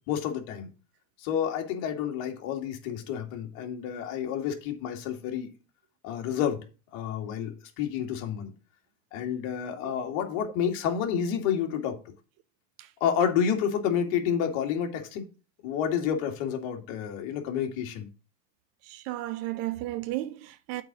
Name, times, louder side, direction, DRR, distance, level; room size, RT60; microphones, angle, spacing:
voice 1, 0.1-0.7 1.2-5.5 6.0-6.6 6.9-8.5 9.1-12.0 13.0-15.3 15.6-18.1, left 8 dB, 50° left, 2.3 m, -29 dB
voice 2, 18.9-20.8, right 16 dB, 40° right, 0.5 m, -34 dB
8.1 x 4.4 x 6.0 m
supercardioid pair, 130°, 40 cm